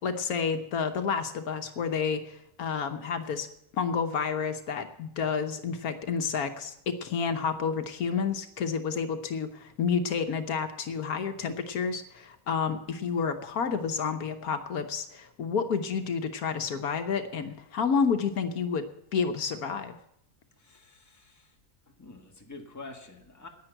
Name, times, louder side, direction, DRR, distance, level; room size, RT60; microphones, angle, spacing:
voice 1, 0.0-3.5 3.7-18.8 19.1-19.9, left 6 dB, 75° left, 8 dB, 1.4 m, -30 dB
voice 2, 20.6-21.5 21.9-23.5, left 3 dB, 10° left, 2 dB, 1.5 m, -47 dB
10.5 x 9.5 x 8.9 m, 0.77 s
omnidirectional pair, 1.5 m